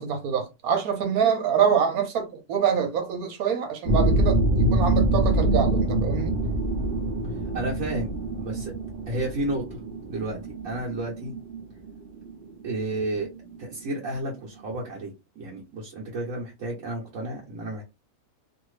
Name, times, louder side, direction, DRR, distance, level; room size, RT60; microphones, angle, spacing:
voice 1, 0.0-6.4, right 7 dB, 80° right, 1.3 m, -25 dB
sound 1, 3.9-14.4, right 1 dB, 50° right, 0.8 m, -25 dB
voice 2, 7.5-8.1 8.4-8.7 9.1-9.8 10.1-10.4 10.6-11.3 12.6-13.3 13.6-17.8, right 1 dB, 65° right, 1.2 m, -31 dB
2.7 x 2.6 x 3.1 m
omnidirectional pair, 1.5 m